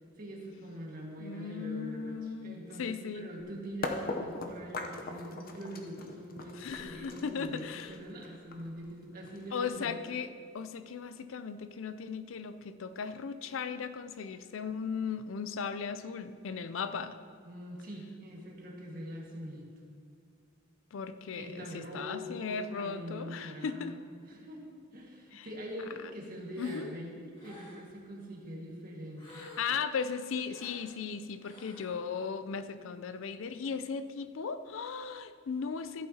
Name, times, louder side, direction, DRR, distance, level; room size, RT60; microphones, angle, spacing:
voice 1, 0.2-10.0 17.4-19.7 21.3-29.4, equal, 45° right, -2 dB, 1.7 m, -44 dB
voice 2, 1.2-3.3 6.6-7.9 9.5-17.2 20.9-24.0 25.3-25.5 26.6-26.9 29.3-36.1, left 6 dB, 75° left, 11 dB, 0.4 m, -37 dB
sound 1, 3.8-9.7, left 2 dB, 45° left, 0.7 m, -40 dB
Gasp, 26.5-26.9 27.3-27.9 29.2-29.9 30.5-30.8 31.4-31.9, left 1 dB, 25° left, 2.0 m, -52 dB
14.0 x 8.7 x 2.8 m, 2.1 s
head